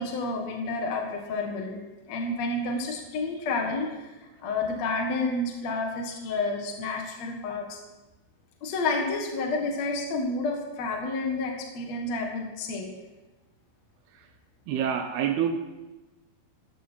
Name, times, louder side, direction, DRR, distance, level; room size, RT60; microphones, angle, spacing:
voice 1, 0.0-1.8 2.1-4.1 4.4-7.8 8.6-12.9, left 3 dB, 55° left, 2 dB, 2.3 m, -30 dB
voice 2, 14.7-15.6, right 8 dB, 80° right, 5 dB, 2.8 m, -27 dB
17.0 x 14.0 x 4.5 m, 1.1 s
omnidirectional pair, 4.5 m